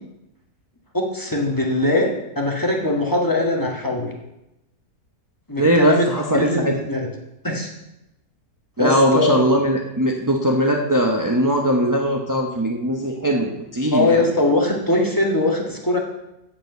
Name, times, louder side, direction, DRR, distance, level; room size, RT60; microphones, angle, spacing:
voice 1, 0.9-4.1 5.5-6.1 6.3-7.1 7.4-7.7 8.8-9.4 13.9-16.0, left 2 dB, 10° left, -1 dB, 1.5 m, -21 dB
voice 2, 5.6-6.7 8.8-14.2, equal, 20° right, 0 dB, 0.5 m, -20 dB
7.7 x 7.2 x 8.0 m, 0.89 s
omnidirectional pair, 1.9 m